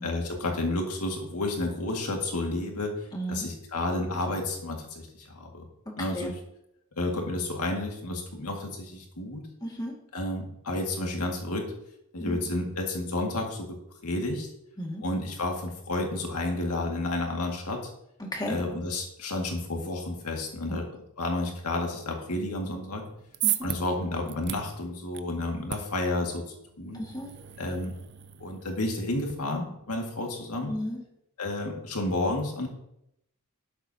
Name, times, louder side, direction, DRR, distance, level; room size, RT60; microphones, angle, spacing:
voice 1, 0.0-5.7 6.0-6.3 7.0-9.4 10.1-11.7 12.1-13.8 14.0-14.5 15.0-17.9 18.5-20.9 21.2-23.0 23.6-27.0 27.6-27.9 28.4-30.7 31.4-32.7, left 2 dB, 90° left, 1 dB, 2.0 m, -31 dB
voice 2, 3.1-3.5 6.1-6.3 9.6-9.9 12.2-12.4 14.8-15.0 18.2-18.6 20.7-20.8 23.4-23.7 26.9-27.3 30.7-31.0, equal, 20° left, 0 dB, 2.0 m, -34 dB
sound 1, 23.0-29.3, right 13 dB, 50° right, 0.5 m, -37 dB
12.0 x 9.9 x 2.8 m, 0.80 s
head